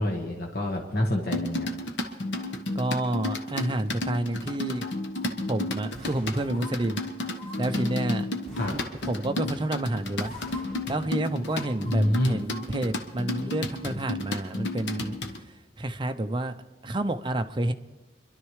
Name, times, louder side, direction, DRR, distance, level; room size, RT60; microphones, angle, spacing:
voice 1, 0.0-1.7 8.6-8.7 11.8-12.4, left 1 dB, 60° left, 0 dB, 1.3 m, -27 dB
sound 1, 1.3-15.4, left 2 dB, 80° left, 1.1 m, -32 dB
voice 2, 2.8-4.9 5.5-7.0 7.6-8.3 8.7-10.3 10.9-15.2 15.4-16.5 16.8-17.7, right 1 dB, 25° right, 8 dB, 0.6 m, -29 dB
sound 2, 5.9-7.2 8.4-9.7 10.2-11.4, right 1 dB, ahead, 6.5 m, -47 dB
sound 3, 6.3-6.7 7.3-7.6 8.5-8.9 9.8-9.9 10.2-10.6 11.4-12.6 13.0-13.1, left 1 dB, 30° left, 1.2 m, -44 dB
25.5 x 12.0 x 3.2 m, 1.1 s
head